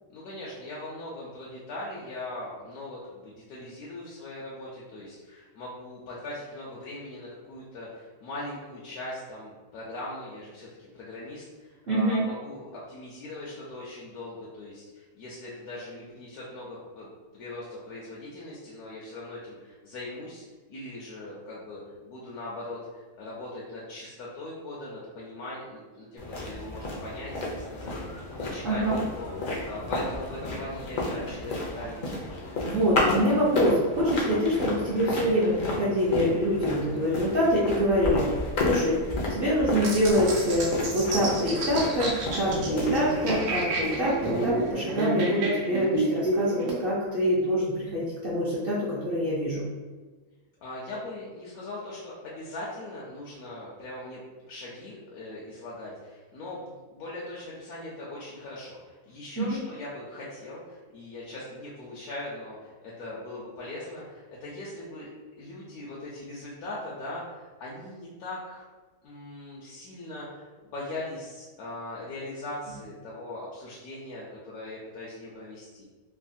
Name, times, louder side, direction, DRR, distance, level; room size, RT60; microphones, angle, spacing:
voice 1, 0.1-17.1 17.3-32.3 50.6-54.2 54.5-65.1 65.3-68.6 69.0-75.8, left 1 dB, 85° left, -6 dB, 1.1 m, -40 dB
voice 2, 11.9-12.2 28.6-29.0 32.6-38.3 38.6-39.0 39.3-49.6 59.4-59.6, equal, 55° right, -7 dB, 0.6 m, -25 dB
sound 1, 26.2-44.7, left 2 dB, 65° left, 0.5 m, -32 dB
sound 2, 39.8-46.8, right 2 dB, 85° right, 1.1 m, -29 dB
3.2 x 2.1 x 2.6 m, 1.3 s
omnidirectional pair, 1.6 m